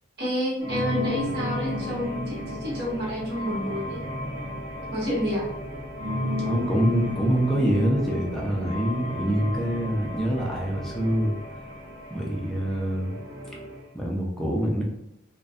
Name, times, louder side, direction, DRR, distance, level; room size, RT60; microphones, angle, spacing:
voice 1, 0.2-4.0 4.9-5.5, equal, 55° right, -6 dB, 1.0 m, -29 dB
sound 1, 0.6-13.9, left 1 dB, 80° right, 0.7 m, -33 dB
voice 2, 6.4-11.4 12.1-13.1 13.9-14.8, equal, ahead, -3 dB, 0.4 m, -25 dB
2.5 x 2.1 x 2.3 m, 0.88 s
head